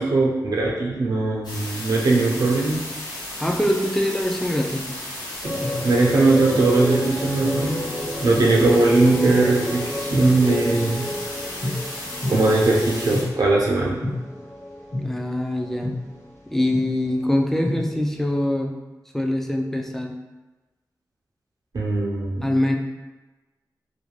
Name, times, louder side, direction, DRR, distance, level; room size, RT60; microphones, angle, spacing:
voice 1, 0.0-2.8 5.4-5.6 5.8-7.9 8.2-11.0 12.3-14.1 21.7-22.5, right 2 dB, 65° right, -4 dB, 0.5 m, -20 dB
sound 1, 1.4-13.2, left 1 dB, 80° left, 1.0 m, -34 dB
voice 2, 3.4-4.9 15.0-15.9 16.5-18.7 19.1-20.2 22.4-22.8, left 1 dB, 5° left, 2 dB, 0.3 m, -23 dB
sound 2, 5.4-16.2 16.7-16.8 17.3-17.8, left 1 dB, 40° left, 1.0 m, -29 dB
2.5 x 2.2 x 3.0 m, 1.1 s
cardioid pair, 65°, 7 cm